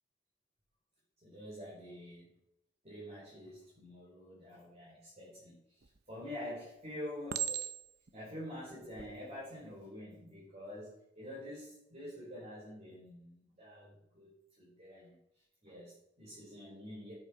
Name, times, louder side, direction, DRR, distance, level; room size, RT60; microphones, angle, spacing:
voice 1, 1.2-2.3 2.8-7.3 8.1-14.3 14.6-15.2 15.6-17.1, left 1 dB, 35° right, -7 dB, 4.7 m, -47 dB
Chink clink, 5.8-6.3 7.3-8.1 8.8-9.1, right 10 dB, 60° right, 0.7 m, -38 dB
9.9 x 8.0 x 5.6 m, 0.82 s
head